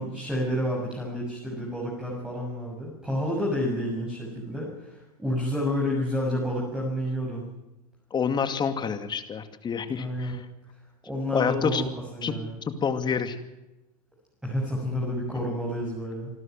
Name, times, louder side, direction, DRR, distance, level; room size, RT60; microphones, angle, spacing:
voice 1, 0.0-7.4 9.9-10.3 11.0-12.5 14.4-16.3, equal, 5° right, -4 dB, 6.7 m, -30 dB
voice 2, 8.1-10.5 11.3-11.8 12.2-12.3 12.6-13.4, left 6 dB, 25° left, 9 dB, 2.4 m, -28 dB
26.5 x 12.5 x 9.3 m, 0.98 s
hypercardioid pair, 110°, 19 cm